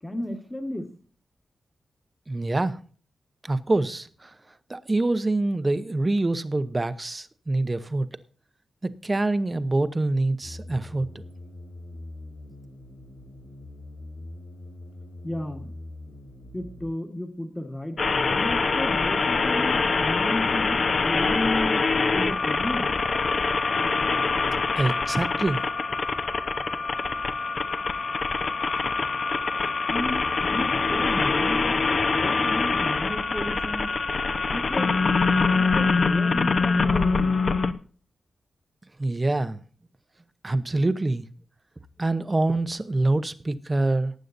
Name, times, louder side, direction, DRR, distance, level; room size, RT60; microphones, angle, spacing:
voice 1, 0.0-0.8 15.2-15.7 16.5-21.8 22.1-22.9 29.9-31.8 32.1-33.9 34.5-35.0 35.5-37.3, left 1 dB, 10° left, 1.5 m, -33 dB
voice 2, 2.3-2.8 3.4-4.3 4.7-8.1 8.8-11.2 24.7-25.6 39.0-39.6 40.4-41.2 42.0-44.1, right 2 dB, 20° right, 0.8 m, -25 dB
sound 1, 10.4-16.9, left 1 dB, 65° left, 6.2 m, -42 dB
sound 2, 18.0-37.7, left 4 dB, 45° left, 0.9 m, -24 dB
19.0 x 9.3 x 2.6 m
wide cardioid pair, 165°, 0 cm